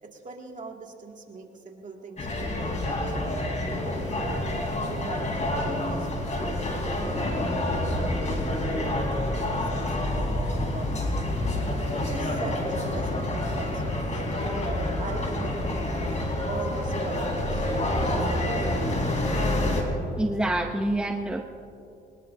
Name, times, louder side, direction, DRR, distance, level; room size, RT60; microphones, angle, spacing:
voice 1, 0.0-3.4 3.8-9.0 9.3-11.6 11.9-14.6 15.0-15.7 16.4-19.0, right 3 dB, 40° right, 1 dB, 2.5 m, -41 dB
sound 1, 2.2-19.8, left 1 dB, 35° left, 3.8 m, -28 dB
voice 2, 20.2-21.5, right 1 dB, 5° right, 4 dB, 0.8 m, -27 dB
23.5 x 20.0 x 2.8 m, 2.7 s
cardioid pair, 90°, 20 cm